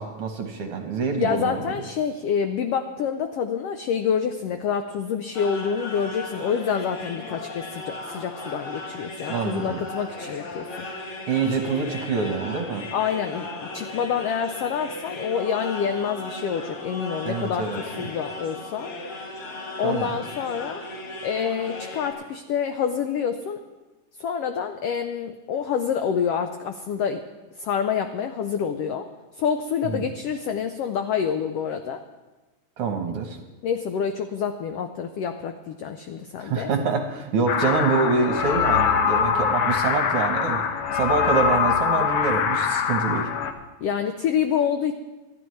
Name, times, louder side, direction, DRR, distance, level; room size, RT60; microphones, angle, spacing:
voice 1, 0.0-1.6 9.3-9.8 11.3-12.9 17.2-18.1 19.8-20.2 29.9-30.1 32.8-33.4 36.4-40.7 40.9-43.3, right 4 dB, 60° right, 4 dB, 1.7 m, -26 dB
voice 2, 1.2-10.8 11.5-11.6 12.9-17.7 18.0-18.9 19.8-20.8 21.2-23.6 24.2-27.2 27.6-29.1 29.3-32.0 33.6-36.7 43.8-45.0, left 7 dB, 85° left, 7 dB, 1.3 m, -27 dB
sound 1, 5.3-22.1, left 2 dB, 50° left, 2.3 m, -36 dB
sound 2, 37.5-43.5, left 7 dB, 70° left, 1.4 m, -23 dB
26.5 x 11.5 x 3.2 m, 1.2 s
omnidirectional pair, 3.5 m